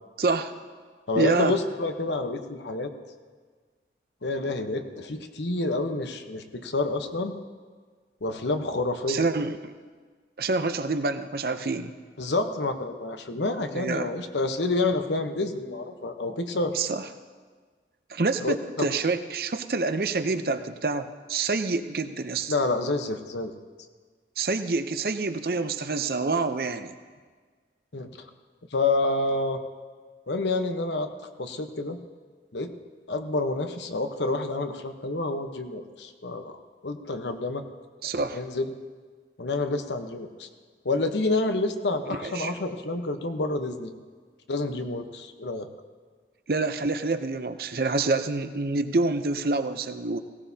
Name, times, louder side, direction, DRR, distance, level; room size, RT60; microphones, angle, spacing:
voice 1, 0.2-0.5 1.2-1.6 9.1-9.7 10.4-11.9 13.7-14.1 16.7-17.0 18.1-22.5 24.4-26.9 38.0-38.4 42.2-42.5 46.5-50.2, right 3 dB, 55° right, 9 dB, 0.6 m, -27 dB
voice 2, 1.1-2.9 4.2-7.4 8.2-9.3 12.2-16.7 18.4-18.9 22.5-23.5 27.9-28.1 28.7-29.6 30.3-31.1 31.4-32.0 32.5-32.7 33.1-36.5 36.8-37.6 38.3-38.7 39.4-40.5 40.8-43.9 44.5-45.7, left 2 dB, 85° left, 7 dB, 1.0 m, -28 dB
17.5 x 17.5 x 2.8 m, 1.5 s
head